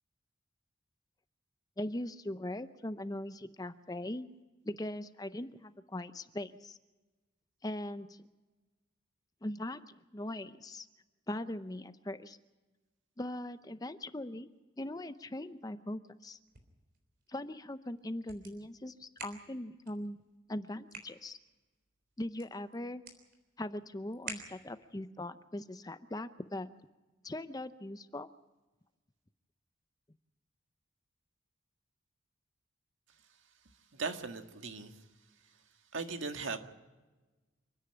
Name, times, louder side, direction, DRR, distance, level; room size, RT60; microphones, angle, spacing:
voice 1, 1.8-4.3 4.6-6.8 7.6-8.3 9.4-9.8 10.1-10.9 11.3-12.4 13.2-14.5 14.8-16.4 17.3-20.2 20.5-21.4 22.2-23.0 23.6-26.7 27.2-28.3, left 1 dB, 20° left, 12 dB, 0.6 m, -40 dB
sound 1, 16.3-25.0, right 5 dB, 50° right, 3.7 m, -52 dB
voice 2, 33.9-35.0 35.9-36.6, right 4 dB, 80° right, 6 dB, 1.8 m, -38 dB
28.0 x 10.0 x 10.0 m, 1.2 s
head